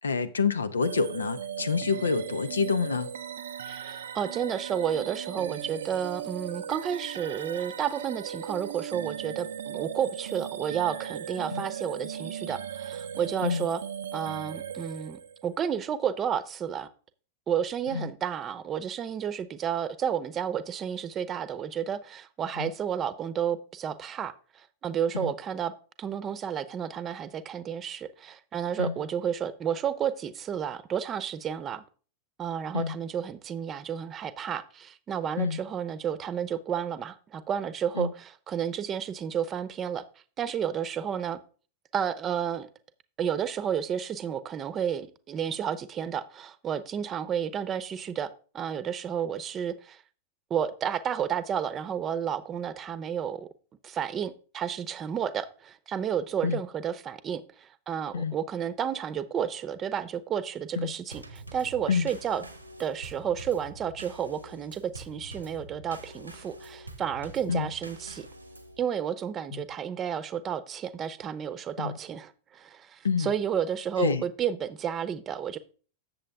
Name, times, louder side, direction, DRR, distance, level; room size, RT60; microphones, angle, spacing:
voice 1, 0.0-3.1 11.5-11.6 13.4-13.7 17.9-18.1 22.6-22.7 25.1-25.3 28.8-29.0 32.7-33.0 35.4-35.6 38.0-38.1 56.4-56.6 58.1-58.4 60.8-60.9 61.9-62.1 67.5-67.7 69.5-69.6 71.8-72.0 73.0-73.3 74.0-74.2, left 5 dB, 75° left, 0.6 m, -27 dB
sound 1, 0.8-15.6, right 9 dB, 65° right, 0.5 m, -37 dB
voice 2, 3.6-13.8 14.1-16.9 17.5-25.7 26.0-31.8 32.4-40.0 40.4-41.4 41.9-42.7 43.2-50.0 50.5-53.5 53.8-62.4 62.8-68.3 68.8-75.6, right 8 dB, 25° right, 0.8 m, -31 dB
Drum kit / Snare drum / Bass drum, 61.1-68.8, right 1 dB, 85° right, 1.1 m, -46 dB
8.6 x 7.1 x 3.4 m
figure-of-eight pair, 90°, 0 cm